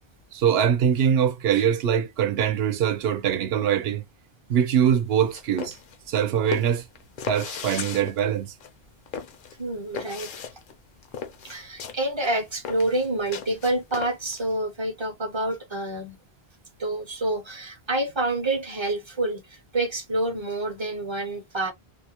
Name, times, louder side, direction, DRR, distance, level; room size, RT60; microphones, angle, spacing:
voice 1, 0.3-4.0 4.5-5.8 6.1-6.8 7.3-8.5, right 8 dB, 75° right, 0.8 m, -23 dB
sound 1, 5.1-14.4, left 7 dB, 60° left, 0.6 m, -37 dB
voice 2, 9.6-10.3 11.4-16.2 16.8-21.7, right 2 dB, 35° right, 0.5 m, -28 dB
2.4 x 2.0 x 2.8 m
omnidirectional pair, 1.0 m